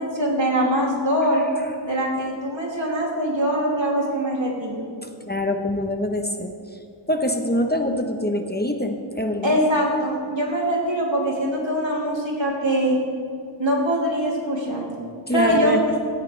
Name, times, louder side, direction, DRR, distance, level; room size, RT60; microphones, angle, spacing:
voice 1, 0.0-1.4 1.8-4.8 9.4-13.0 13.6-14.9 15.3-15.9, equal, 70° right, -2 dB, 2.9 m, -23 dB
voice 2, 5.3-6.5 7.1-9.6 15.3-15.8, left 1 dB, 20° left, 4 dB, 1.0 m, -24 dB
17.0 x 15.0 x 3.4 m, 2.5 s
wide cardioid pair, 50°, 47 cm